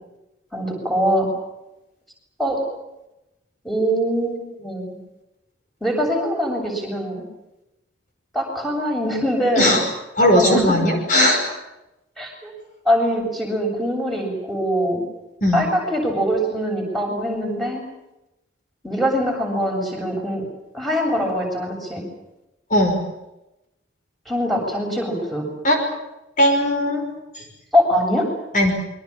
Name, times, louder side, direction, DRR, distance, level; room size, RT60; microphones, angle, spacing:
voice 1, 0.5-1.3 2.4-2.6 3.6-5.0 5.8-7.2 8.3-9.8 10.3-10.8 12.2-12.5 12.9-15.1 15.5-17.8 18.8-20.4 20.7-22.0 24.3-25.5 27.7-28.3, equal, ahead, -1 dB, 7.6 m, -22 dB
voice 2, 10.2-11.4 15.4-15.7 22.7-23.0 25.6-25.8 26.4-27.1 27.4-27.5 28.5-28.7, left 1 dB, 40° left, 3 dB, 5.6 m, -17 dB
27.0 x 24.0 x 7.4 m, 0.92 s
head